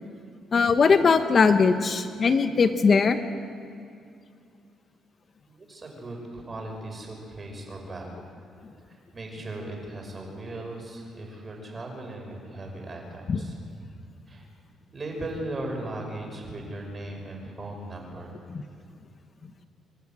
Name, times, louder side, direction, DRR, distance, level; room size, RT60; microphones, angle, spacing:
voice 1, 0.5-3.2 13.3-13.4, left 5 dB, 45° left, 8 dB, 1.2 m, -20 dB
voice 2, 5.5-8.2 8.9-13.5 14.3-14.4 14.9-18.4, right 1 dB, 30° right, 1 dB, 6.3 m, -37 dB
26.5 x 12.0 x 9.1 m, 2.4 s
cardioid pair, 90°, 0 cm